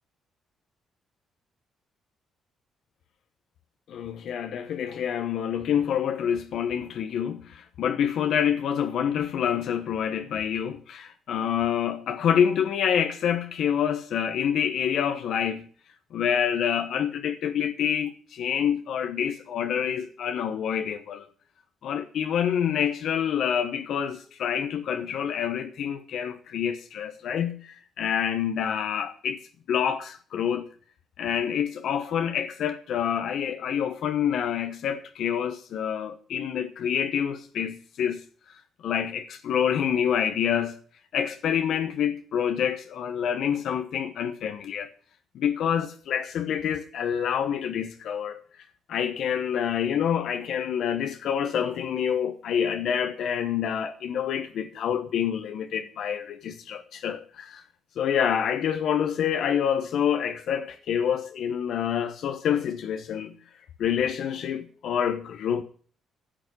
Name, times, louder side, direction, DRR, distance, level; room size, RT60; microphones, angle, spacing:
voice 1, 3.9-15.7 16.1-21.3 21.8-29.4 29.7-30.7 31.2-38.2 38.8-40.8 41.1-44.9 45.3-48.4 48.9-57.6 58.0-63.3 63.8-65.6, left 8 dB, 70° left, 1.0 m, -27 dB
11.0 x 6.3 x 8.3 m
cardioid pair, 90°, 0 cm